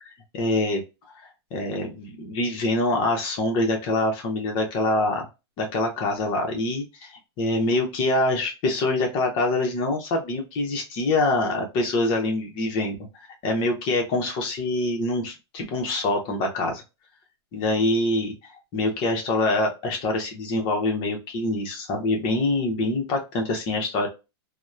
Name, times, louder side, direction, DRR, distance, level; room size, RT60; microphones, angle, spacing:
voice 1, 0.3-0.8 1.5-5.3 5.6-13.0 13.4-16.8 17.5-24.1, left 2 dB, 35° left, 2 dB, 0.7 m, -25 dB
2.8 x 2.1 x 2.3 m, 0.27 s
supercardioid pair, 145°, 14 cm